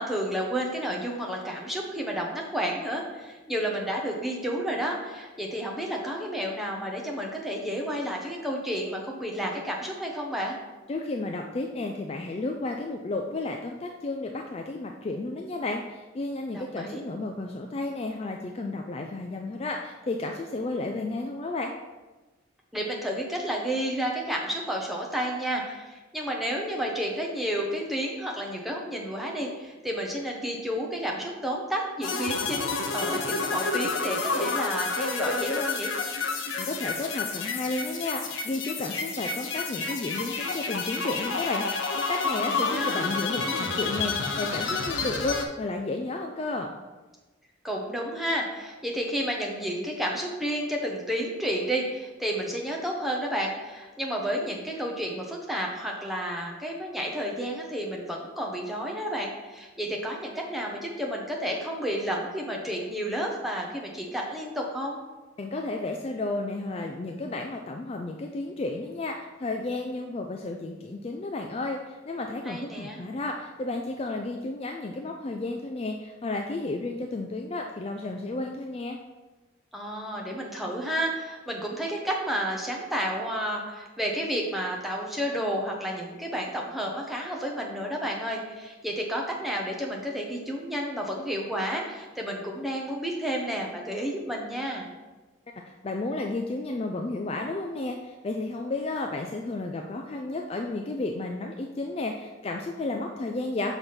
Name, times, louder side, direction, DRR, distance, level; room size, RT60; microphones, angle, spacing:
voice 1, 0.0-10.6 16.5-17.0 22.7-35.9 42.3-43.0 47.6-65.0 72.5-73.0 79.7-94.9, equal, ahead, -1 dB, 0.9 m, -31 dB
voice 2, 10.9-21.7 36.6-46.7 65.4-79.0 95.7-103.8, left 2 dB, 30° left, 2 dB, 0.3 m, -32 dB
sound 1, 32.0-45.4, left 4 dB, 75° left, 0.7 m, -30 dB
6.0 x 3.4 x 5.6 m, 1.2 s
head